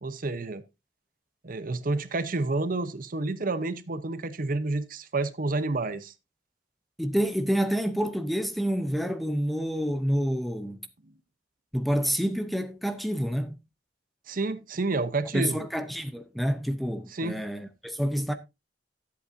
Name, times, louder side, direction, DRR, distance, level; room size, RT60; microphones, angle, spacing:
voice 1, 0.0-0.6 1.4-6.1 14.3-15.7 17.1-17.4, right 3 dB, 50° right, 0.8 m, -29 dB
voice 2, 7.0-10.9 11.7-13.6 15.3-18.3, equal, ahead, 0.7 m, -28 dB
13.0 x 8.3 x 2.6 m
head